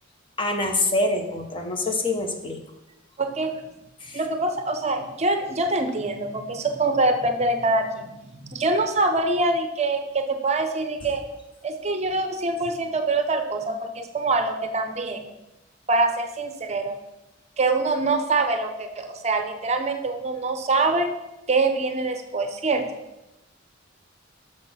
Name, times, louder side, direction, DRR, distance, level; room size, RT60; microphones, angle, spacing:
voice 1, 0.4-2.6 4.0-4.2, left 2 dB, 25° left, 4 dB, 0.9 m, -25 dB
voice 2, 3.2-3.5 4.1-11.2 11.6-15.2 15.9-17.0 17.6-21.1 21.5-23.0, right 2 dB, 35° right, 7 dB, 0.7 m, -24 dB
6.4 x 5.9 x 6.1 m, 0.95 s
head